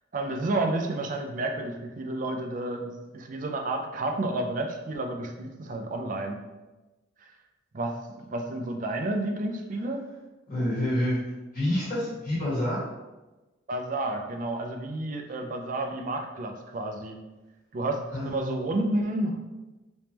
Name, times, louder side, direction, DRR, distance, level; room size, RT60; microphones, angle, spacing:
voice 1, 0.1-6.4 7.7-8.0 8.3-10.1 13.7-17.2 17.7-19.4, right 2 dB, 45° right, 4 dB, 0.4 m, -30 dB
voice 2, 10.5-11.2 11.5-12.8 18.1-18.4, left 1 dB, 45° left, -8 dB, 1.3 m, -27 dB
3.4 x 3.1 x 2.9 m, 1.1 s
head